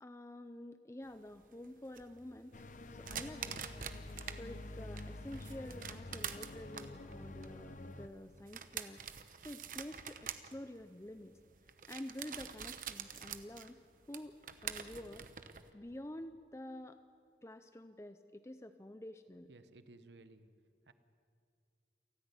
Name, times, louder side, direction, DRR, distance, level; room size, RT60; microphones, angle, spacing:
voice 1, 0.0-2.7 2.9-3.6 4.3-9.0 9.4-11.4 11.8-13.8 14.1-15.3 15.7-17.0 17.4-19.5, left 1 dB, 15° left, 10 dB, 0.5 m, -49 dB
sound 1, 1.1-4.4 4.8-15.7, right 8 dB, 50° right, 0.9 m, -46 dB
sound 2, 2.5-8.1, left 2 dB, 45° left, 0.8 m, -48 dB
voice 2, 19.5-20.5 20.9-21.0, right 2 dB, 85° right, 11 dB, 1.0 m, -57 dB
28.5 x 10.5 x 9.9 m, 2.3 s
head